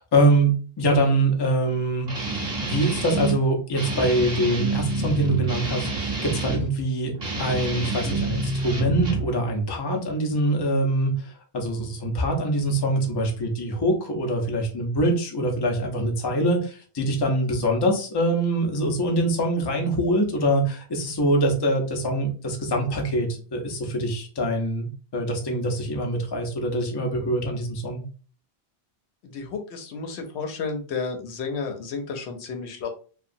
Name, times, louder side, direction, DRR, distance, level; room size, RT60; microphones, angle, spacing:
voice 1, 0.1-7.1 7.4-28.0, right 1 dB, 30° left, 2 dB, 0.5 m, -24 dB
Guitar, 2.1-3.4 3.7-6.7 7.1-9.3, right 3 dB, 45° right, 0.8 m, -28 dB
voice 2, 29.2-32.9, left 4 dB, 85° left, 4 dB, 0.9 m, -32 dB
2.8 x 2.3 x 2.5 m, 0.39 s
omnidirectional pair, 1.1 m